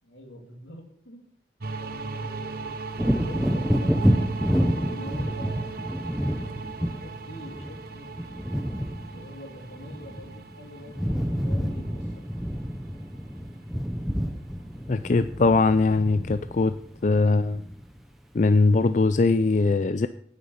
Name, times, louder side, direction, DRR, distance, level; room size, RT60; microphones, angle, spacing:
voice 1, 0.0-1.2 1.8-4.1 4.6-6.1 6.4-6.6 6.9-8.1 8.9-12.3, left 1 dB, 75° left, 3 dB, 2.8 m, -45 dB
sound 1, 1.6-14.1, right 3 dB, 50° right, 1.0 m, -37 dB
Wind / Thunder, 2.9-10.5 10.8-18.0 18.5-18.6, equal, ahead, 0.8 m, -29 dB
voice 2, 14.9-16.7 17.0-17.6 18.3-20.1, left 3 dB, 40° left, 11 dB, 0.4 m, -21 dB
9.7 x 9.7 x 7.0 m, 0.66 s
head